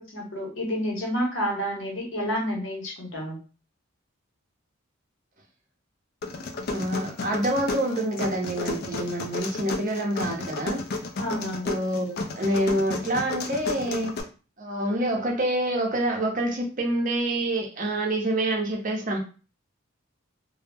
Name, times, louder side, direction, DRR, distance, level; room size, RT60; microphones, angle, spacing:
voice 1, 0.0-3.4 11.2-11.7, equal, 65° left, 0.9 m, -29 dB
sound 1, 6.2-14.2, left 3 dB, 50° left, 0.4 m, -33 dB
voice 2, 6.7-10.8 11.6-14.2 14.6-19.2, right 1 dB, 40° right, 0.7 m, -27 dB
2.1 x 2.0 x 3.3 m
head